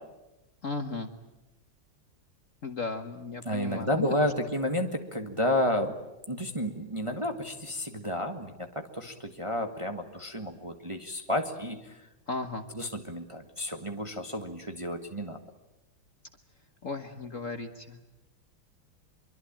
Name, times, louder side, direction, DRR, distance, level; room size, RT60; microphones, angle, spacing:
voice 1, 0.6-1.1 2.6-4.1 12.3-12.7 16.8-18.0, left 4 dB, 40° left, 7 dB, 1.5 m, -35 dB
voice 2, 3.4-5.9 6.3-11.8 12.8-15.4, left 1 dB, 15° right, 4 dB, 1.4 m, -31 dB
24.5 x 23.5 x 8.9 m, 1.0 s
omnidirectional pair, 2.3 m